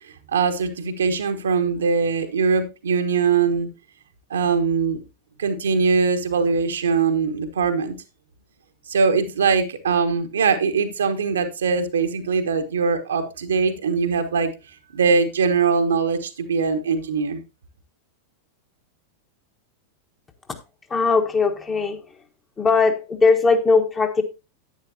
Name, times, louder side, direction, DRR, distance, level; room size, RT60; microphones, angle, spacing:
voice 1, 0.3-3.7 4.3-5.0 5.4-7.9 8.9-14.5 14.9-17.4, right 5 dB, 65° right, 1.2 m, -21 dB
voice 2, 20.9-22.0 22.6-24.2, left 4 dB, 20° left, 1.3 m, -19 dB
10.5 x 9.1 x 2.8 m
figure-of-eight pair, 90°, 0 cm